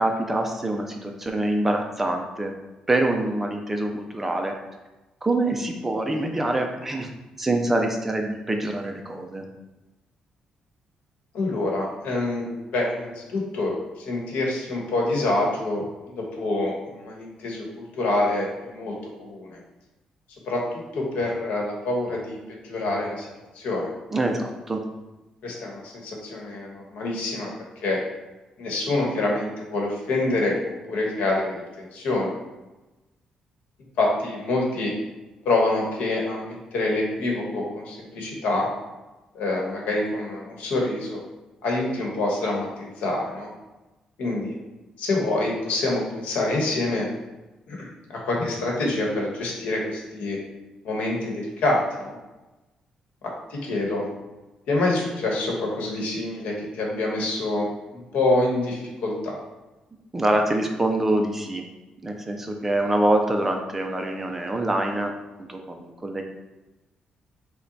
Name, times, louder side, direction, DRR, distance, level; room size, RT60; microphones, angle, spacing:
voice 1, 0.0-2.5 2.9-4.5 5.2-7.1 7.4-9.5 24.1-24.8 60.1-61.6 62.0-65.1 65.5-66.2, right 1 dB, 10° right, 3 dB, 0.4 m, -25 dB
voice 2, 11.3-18.9 19.2-19.6 20.4-23.3 23.5-23.9 25.4-27.5 27.8-28.0 28.6-32.3 34.0-34.9 35.4-38.7 39.3-41.2 41.6-43.5 44.2-44.6 45.0-47.1 47.7-50.4 50.8-52.1 53.2-54.0 54.7-59.4, left 2 dB, 80° left, -1 dB, 1.1 m, -26 dB
5.6 x 2.2 x 3.9 m, 1.1 s
cardioid pair, 180°, 2 cm